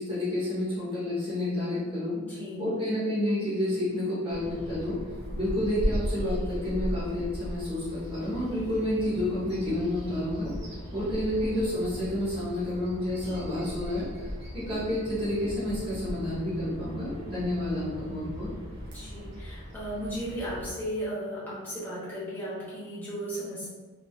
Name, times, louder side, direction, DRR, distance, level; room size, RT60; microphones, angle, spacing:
voice 1, 0.0-2.2 2.6-5.0 5.3-10.5 10.9-14.1 14.5-18.5, left 1 dB, 25° right, -11 dB, 1.4 m, -30 dB
voice 2, 2.2-2.8 18.8-23.7, equal, 10° left, -10 dB, 1.2 m, -36 dB
Bird vocalization bird call bird song, 4.3-20.7, equal, 50° right, 0.9 m, -37 dB
3.5 x 3.0 x 2.7 m, 1.4 s
head